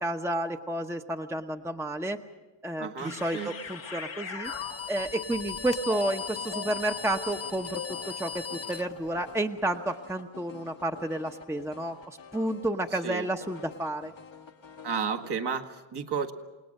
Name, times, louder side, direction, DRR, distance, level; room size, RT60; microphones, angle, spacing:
voice 1, 0.0-2.2 2.6-4.5 4.9-14.1, right 1 dB, 5° right, 4 dB, 1.0 m, -31 dB
sound 1, 2.2-2.3 3.0-5.2 5.9-15.3, left 5 dB, 70° left, 1.4 m, -44 dB
voice 2, 2.8-3.5 13.0-13.3 14.8-16.3, right 6 dB, 55° right, 3 dB, 1.9 m, -32 dB
sound 2, 4.4-9.4, left 6 dB, 30° left, 0.9 m, -38 dB
28.5 x 18.5 x 6.6 m, 1.1 s
cardioid pair, 70°, 46 cm